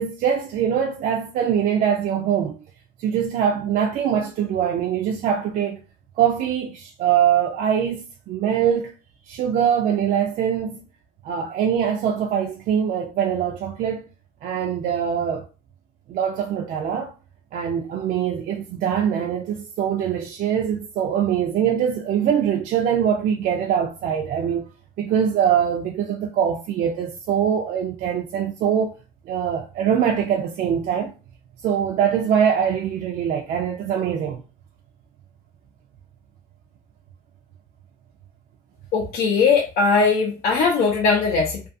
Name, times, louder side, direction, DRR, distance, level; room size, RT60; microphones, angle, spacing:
voice 1, 0.0-2.6 3.0-5.8 6.2-8.9 9.3-10.8 11.2-14.1 14.4-15.5 16.1-17.1 17.5-24.7 25.0-28.9 29.3-31.1 31.6-34.4, right 8 dB, 55° right, 0.4 m, -23 dB
voice 2, 38.9-41.7, left 4 dB, 65° left, 0.5 m, -19 dB
2.4 x 2.4 x 2.5 m
cardioid pair, 115°, 17 cm